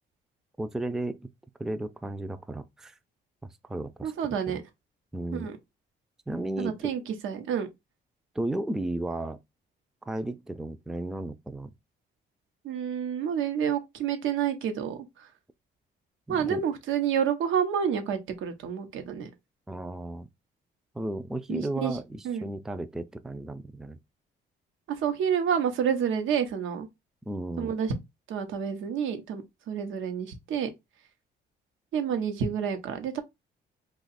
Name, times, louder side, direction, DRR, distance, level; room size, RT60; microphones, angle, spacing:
voice 1, 0.6-1.2 1.6-3.0 3.4-4.1 4.5-4.6 5.1-5.5 6.3-6.9 8.3-9.4 10.1-11.7 16.3-16.6 19.7-20.3 20.9-24.0 27.2-27.7, right 1 dB, ahead, 0.4 m, -34 dB
voice 2, 4.0-4.6 5.3-5.6 6.6-7.7 12.6-15.3 16.3-19.3 21.5-22.0 22.2-22.4 25.0-26.9 27.6-28.0 28.3-30.7 31.9-33.2, right 8 dB, 85° right, 1.0 m, -29 dB
2.8 x 2.4 x 4.0 m
cardioid pair, 90°, 20 cm